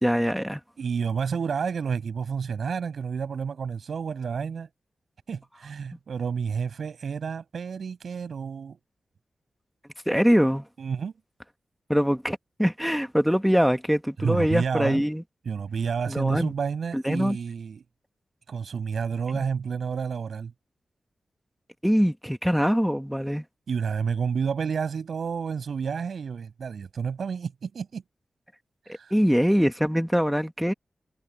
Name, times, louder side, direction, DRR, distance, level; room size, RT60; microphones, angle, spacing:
voice 1, 0.0-0.6 10.1-10.6 11.9-15.2 16.1-16.5 16.9-17.4 19.3-19.4 21.8-23.4 29.1-30.7, equal, ahead, 1.3 m, -23 dB
voice 2, 0.8-4.7 5.3-8.8 10.8-11.2 14.2-15.0 15.5-17.8 18.5-20.5 23.7-28.0 28.9-29.1, right 6 dB, 75° right, 7.6 m, -30 dB
wide cardioid pair, 175°, 0 cm